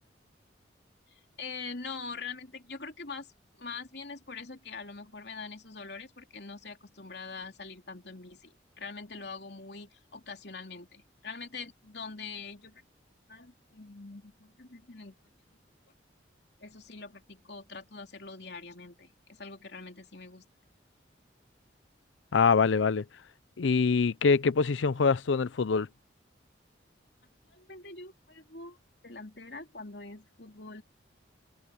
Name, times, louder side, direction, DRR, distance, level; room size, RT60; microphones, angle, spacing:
voice 1, 1.1-12.8 13.3-15.2 16.6-20.5 27.5-28.8 29.0-30.8, left 4 dB, 65° left, 3.2 m, -44 dB
voice 2, 22.3-23.0 23.6-25.9, left 5 dB, 85° left, 0.5 m, -24 dB
head